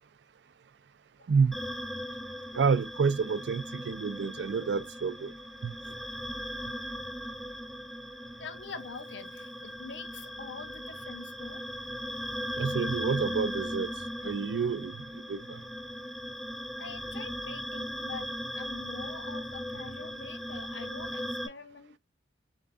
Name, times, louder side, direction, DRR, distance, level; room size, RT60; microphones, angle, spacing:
sound 1, 1.5-21.5, equal, ahead, 0.3 m, -38 dB
voice 1, 2.5-5.3 5.6-5.7 12.6-13.9 14.2-15.6, right 5 dB, 70° right, 0.4 m, -29 dB
voice 2, 8.4-11.6 16.8-22.0, left 4 dB, 75° left, 0.7 m, -45 dB
3.9 x 3.4 x 2.4 m
head